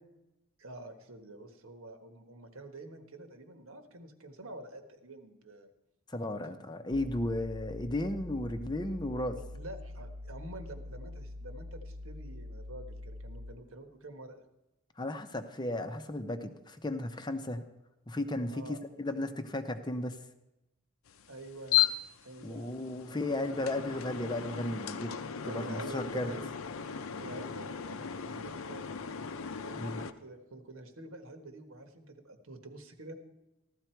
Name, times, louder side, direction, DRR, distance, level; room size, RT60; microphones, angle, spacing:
voice 1, 0.6-5.7 9.5-14.4 18.5-19.0 21.3-21.9 22.2-22.8 25.4-26.4 27.2-28.9 29.6-33.2, right 1 dB, 75° right, 6 dB, 1.5 m, -47 dB
voice 2, 6.1-9.4 15.0-17.7 18.1-20.2 22.4-26.3 29.7-30.0, left 1 dB, 20° left, 7 dB, 0.7 m, -35 dB
sound 1, 6.9-13.7, left 1 dB, 50° right, 0.7 m, -44 dB
sound 2, 21.1-30.1, left 9 dB, 75° left, 0.7 m, -36 dB
15.0 x 12.5 x 4.5 m, 0.95 s
head